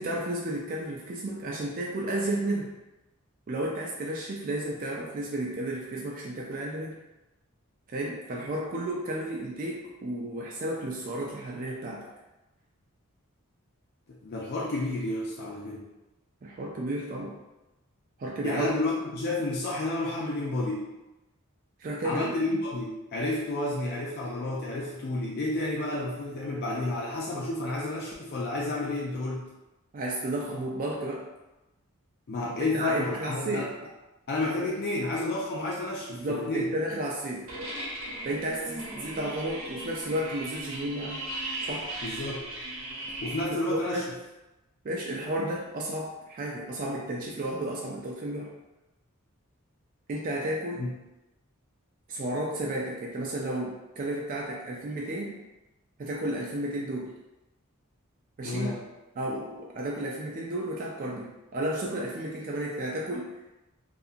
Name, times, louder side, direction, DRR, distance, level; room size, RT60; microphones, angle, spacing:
voice 1, 0.0-2.7 3.5-7.0 7.9-12.1 16.4-17.4 18.2-18.7 21.8-22.3 29.9-31.2 32.4-33.7 34.6-34.7 36.1-37.5 38.2-41.2 41.6-41.9 43.7-44.1 44.8-48.5 50.1-50.9 52.1-55.4 56.0-57.1 58.4-58.7 59.2-63.3, right 1 dB, 40° right, -3 dB, 0.3 m, -32 dB
voice 2, 14.1-15.8 18.4-20.9 22.0-29.4 32.3-33.7 34.3-36.7 42.0-42.4 43.2-44.0 50.8-50.9 58.4-58.8, left 2 dB, 45° left, -4 dB, 0.4 m, -30 dB
sound 1, 37.5-43.5, right 1 dB, 70° right, 0.8 m, -37 dB
2.7 x 2.4 x 2.4 m, 1.0 s
head